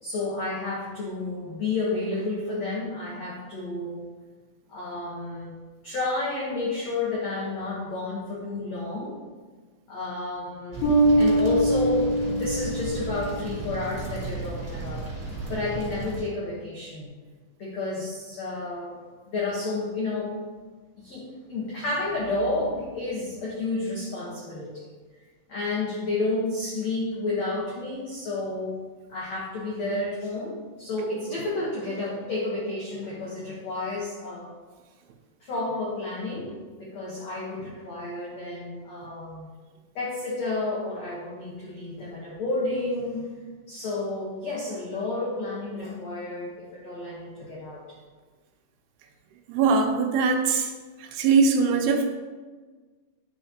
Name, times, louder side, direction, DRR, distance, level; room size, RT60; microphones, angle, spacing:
voice 1, 0.0-4.1 4.7-9.2 9.9-15.0 15.5-17.1 17.6-19.0 19.3-20.3 21.0-24.9 25.5-28.8 29.1-34.5 35.4-39.5 39.9-43.3 43.7-48.0, left 2 dB, 85° left, -6 dB, 1.5 m, -31 dB
sound 1, 10.7-16.2, right 3 dB, 25° right, 1.7 m, -35 dB
Bass guitar, 10.8-13.5, right 1 dB, 60° left, 4.3 m, -23 dB
voice 2, 49.5-50.7 51.1-52.2, right 4 dB, 80° right, 3 dB, 2.4 m, -21 dB
10.5 x 5.7 x 2.9 m, 1.4 s
omnidirectional pair, 5.1 m